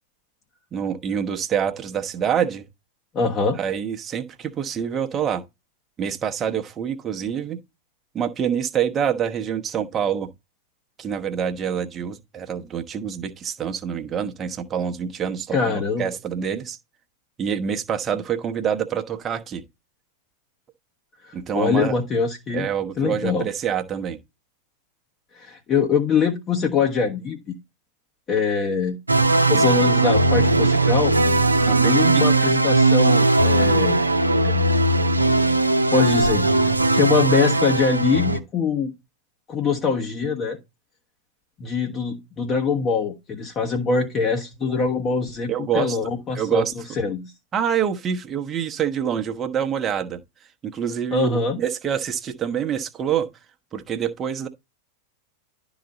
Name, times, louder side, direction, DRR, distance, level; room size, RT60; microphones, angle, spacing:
voice 1, 0.7-2.6 3.6-5.4 6.0-7.6 8.1-10.3 11.0-16.8 17.4-19.6 21.3-21.9 22.5-24.2 29.6-29.7 31.7-32.2 44.6-44.8 45.5-46.0 46.3-46.7 47.5-50.2 50.6-53.3 53.7-54.5, right 8 dB, 25° right, 1.0 m, -26 dB
voice 2, 3.1-3.6 15.5-16.1 21.2-22.7 23.0-23.5 25.3-27.6 28.3-29.0 29.5-31.1 31.8-34.0 34.4-34.6 35.9-38.9 39.5-40.6 41.6-47.3 51.1-51.6, left 5 dB, 30° left, 1.1 m, -23 dB
sound 1, 29.1-38.4, right 2 dB, 80° right, 0.7 m, -18 dB
11.5 x 4.0 x 4.1 m
figure-of-eight pair, 90°, 0 cm